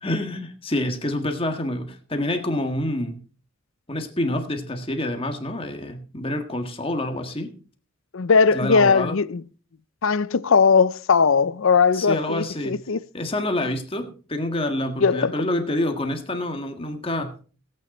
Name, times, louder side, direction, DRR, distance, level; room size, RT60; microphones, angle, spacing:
voice 1, 0.0-3.2 3.9-7.5 8.5-9.2 11.9-12.8 13.1-17.3, left 1 dB, 25° left, 1.6 m, -27 dB
voice 2, 8.1-9.4 10.0-13.0 15.0-15.3, left 5 dB, 65° left, 0.5 m, -19 dB
17.0 x 9.3 x 4.3 m
head